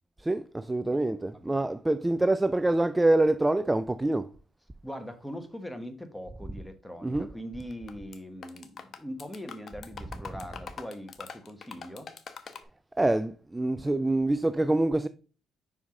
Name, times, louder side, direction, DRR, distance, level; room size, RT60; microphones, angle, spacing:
voice 1, 0.2-4.3 7.0-7.3 13.0-15.1, right 2 dB, 15° right, 0.3 m, -25 dB
voice 2, 4.8-12.1, equal, 5° left, 1.1 m, -41 dB
sound 1, 7.6-8.2 8.4-12.6, left 6 dB, 55° left, 0.8 m, -43 dB
5.5 x 4.7 x 3.6 m
cardioid pair, 90°, 0 cm